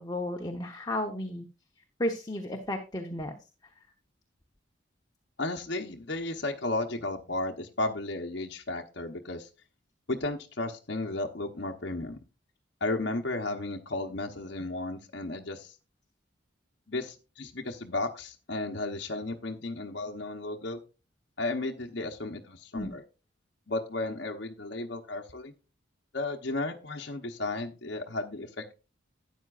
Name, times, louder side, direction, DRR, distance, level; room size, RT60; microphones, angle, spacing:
voice 1, 0.0-1.5 2.0-3.4 22.7-23.0, left 1 dB, 20° left, 2 dB, 1.0 m, -33 dB
voice 2, 5.4-9.5 10.1-12.2 12.8-15.7 16.9-20.8 21.4-23.0 23.7-25.5 26.1-28.7, left 2 dB, 60° left, 2 dB, 0.9 m, -34 dB
12.5 x 9.2 x 2.5 m, 0.30 s
head